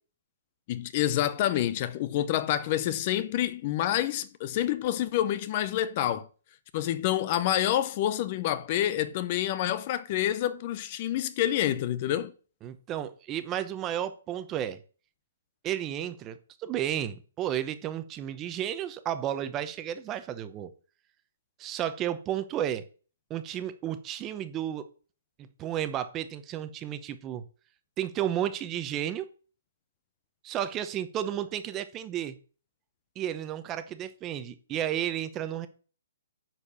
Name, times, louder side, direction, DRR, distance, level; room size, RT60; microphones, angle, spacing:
voice 1, 0.7-6.3 6.7-12.3, left 12 dB, 35° left, 0.6 m, -28 dB
voice 2, 12.6-14.8 15.6-20.7 21.6-22.8 23.3-24.9 25.4-27.4 28.0-29.3 30.4-32.4 33.2-35.7, right 11 dB, 20° right, 0.8 m, -32 dB
9.8 x 4.6 x 6.9 m
hypercardioid pair, 160°, 0 cm